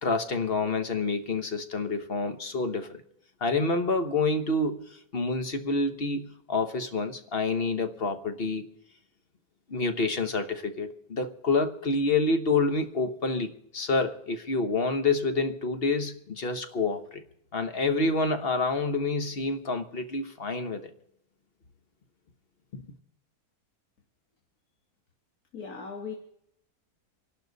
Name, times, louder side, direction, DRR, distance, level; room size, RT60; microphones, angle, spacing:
voice 1, 0.0-3.0 3.4-8.7 9.7-17.2 17.5-20.9 22.7-22.8, left 3 dB, 40° left, 1.3 m, -28 dB
voice 2, 25.5-26.2, left 5 dB, 70° left, 2.1 m, -38 dB
27.5 x 11.5 x 4.0 m
omnidirectional pair, 1.6 m